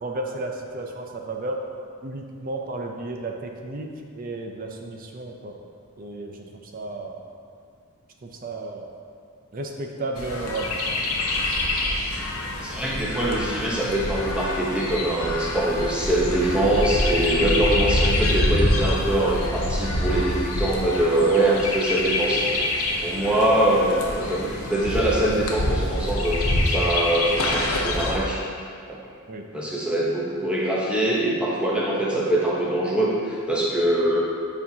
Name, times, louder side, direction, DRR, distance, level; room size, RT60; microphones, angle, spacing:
voice 1, 0.0-1.6 2.0-5.6 6.0-7.2 8.2-8.9 9.5-10.8 29.3-29.5, right 2 dB, 40° right, 2 dB, 0.5 m, -33 dB
Chirp tweet, 10.2-28.2, left 1 dB, 70° left, 0.7 m, -26 dB
voice 2, 12.6-22.5 23.0-28.4 29.5-34.2, right 1 dB, 5° right, -5 dB, 0.8 m, -23 dB
8.3 x 4.3 x 2.8 m, 2.3 s
head